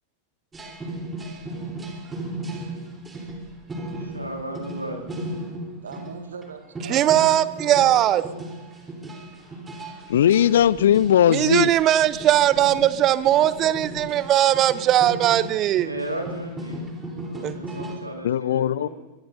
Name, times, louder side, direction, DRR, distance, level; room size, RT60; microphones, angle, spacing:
sound 1, 0.5-6.2 6.4-6.5 6.7-18.0, right 1 dB, 15° right, 3.5 m, -35 dB
voice 1, 4.0-5.2 15.7-16.9 17.3-18.9, right 1 dB, 85° right, 2 dB, 2.0 m, -35 dB
voice 2, 5.8-7.2 7.6-8.3, right 5 dB, 70° right, 5 dB, 1.8 m, -39 dB
voice 3, 6.9-8.2 11.3-15.9 17.4-17.6, right 12 dB, 35° right, 16 dB, 0.7 m, -19 dB
voice 4, 10.1-11.7 18.2-18.9, left 10 dB, 60° left, 21 dB, 0.4 m, -18 dB
23.5 x 21.0 x 2.6 m, 1.2 s
figure-of-eight pair, 90°, 0 cm